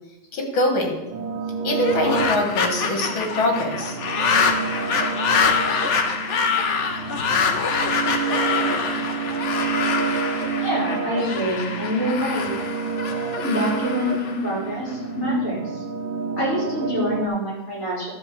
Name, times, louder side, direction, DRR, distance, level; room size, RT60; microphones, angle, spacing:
voice 1, 0.3-1.1 1.6-4.0, left 2 dB, 75° left, 3 dB, 2.5 m, -24 dB
sound 1, 1.1-17.3, right 5 dB, 70° right, 1.7 m, -29 dB
sound 2, 1.8-14.9, left 5 dB, 60° left, 0.8 m, -25 dB
voice 2, 10.6-12.5 13.4-15.8 16.4-18.1, equal, 35° left, -6 dB, 4.4 m, -26 dB
11.5 x 4.0 x 7.4 m, 1.0 s
omnidirectional pair, 2.3 m